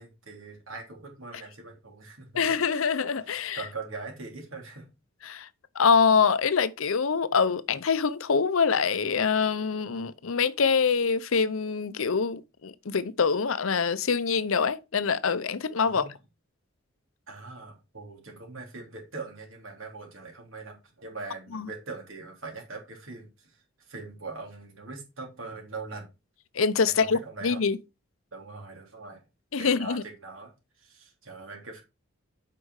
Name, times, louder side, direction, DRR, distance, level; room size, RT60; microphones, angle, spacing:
voice 1, 0.0-2.3 3.3-4.9 15.8-16.1 17.3-26.1 26.8-27.6 28.3-29.2 29.6-30.5 30.8-31.8, right 3 dB, 70° right, 3.3 m, -42 dB
voice 2, 2.3-3.6 5.2-5.5 5.8-16.0 21.5-21.7 26.5-27.8 29.5-30.0, left 5 dB, 75° left, 0.7 m, -25 dB
8.4 x 5.4 x 4.8 m
head